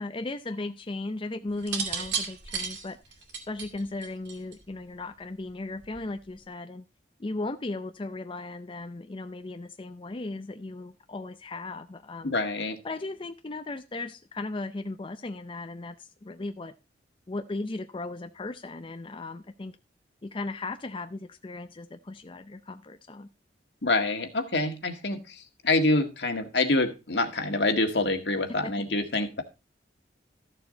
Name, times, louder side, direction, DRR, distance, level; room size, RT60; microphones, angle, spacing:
voice 1, 0.0-3.0 3.5-6.8 7.2-12.3 12.8-16.7 17.3-19.8 20.2-23.3 28.6-28.7, left 2 dB, 30° left, 8 dB, 0.6 m, -36 dB
sound 1, 1.6-4.7 5.8-6.2, right 6 dB, 85° right, 2.7 m, -33 dB
voice 2, 12.2-12.8 23.8-29.4, left 2 dB, 75° left, 6 dB, 1.8 m, -26 dB
13.5 x 7.0 x 4.0 m, 0.28 s
head